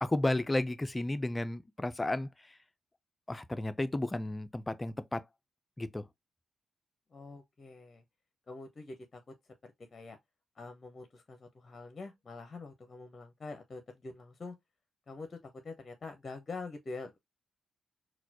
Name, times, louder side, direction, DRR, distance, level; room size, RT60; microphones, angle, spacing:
voice 1, 0.0-2.6 3.3-5.2 5.8-6.1, left 2 dB, 20° left, 0.5 m, -33 dB
voice 2, 7.1-8.0 8.5-9.2 9.8-10.2 10.6-14.6 15.1-17.2, left 3 dB, 45° left, 0.8 m, -45 dB
4.0 x 2.3 x 2.8 m
hypercardioid pair, 45°, 0 cm